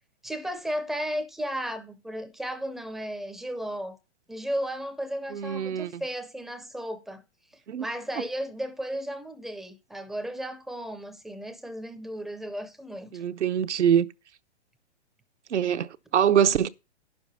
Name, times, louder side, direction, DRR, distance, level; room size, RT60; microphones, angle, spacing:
voice 1, 0.2-4.0 4.3-7.2 7.8-13.2, equal, ahead, 0.4 m, -34 dB
voice 2, 5.3-6.0 7.7-7.9 13.1-14.1 15.5-16.7, right 9 dB, 85° right, 0.9 m, -24 dB
10.5 x 6.8 x 5.5 m
hypercardioid pair, 140°, 34 cm